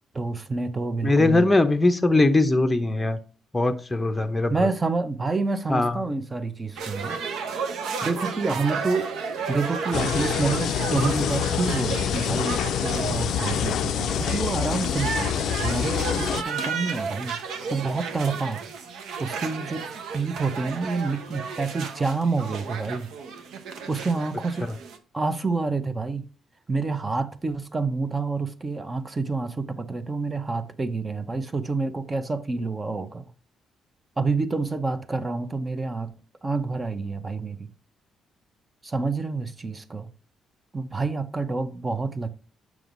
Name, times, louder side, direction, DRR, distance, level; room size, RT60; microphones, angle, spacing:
voice 1, 0.1-1.6 4.5-7.2 8.0-9.1 9.5-17.4 17.7-18.7 19.2-19.8 20.1-23.1 23.9-24.7 25.1-26.2 26.7-33.3 34.2-36.1 36.4-37.7 38.8-40.1 40.7-42.3, right 3 dB, 25° right, 0.7 m, -28 dB
voice 2, 1.0-3.2 3.5-4.5 5.7-6.0 24.6-24.7, left 2 dB, 15° left, 0.7 m, -21 dB
sound 1, 6.8-25.0, right 5 dB, 80° right, 0.9 m, -33 dB
sound 2, 9.9-16.4, left 9 dB, 75° left, 0.3 m, -26 dB
7.6 x 6.0 x 2.6 m
cardioid pair, 90°, 0 cm